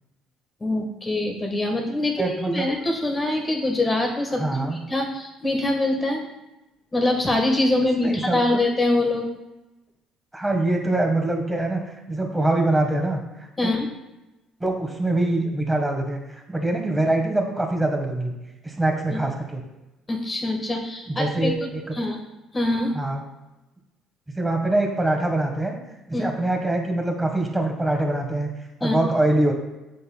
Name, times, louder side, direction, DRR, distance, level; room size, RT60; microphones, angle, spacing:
voice 1, 0.6-6.2 6.9-9.2 13.6-13.9 19.1-19.2 20.1-21.7 21.9-22.2 22.5-22.9 26.1-26.3 28.8-29.1, left 2 dB, 25° left, 2 dB, 1.6 m, -24 dB
voice 2, 2.2-2.7 4.4-4.8 8.0-8.4 10.3-11.8 12.1-13.2 13.6-13.7 14.6-18.3 18.6-19.6 21.1-21.8 22.9-23.2 24.3-25.8 26.1-28.5 28.8-29.5, right 2 dB, 10° right, 2 dB, 1.5 m, -24 dB
7.7 x 5.3 x 2.3 m, 0.99 s
hypercardioid pair, 65°, 0 cm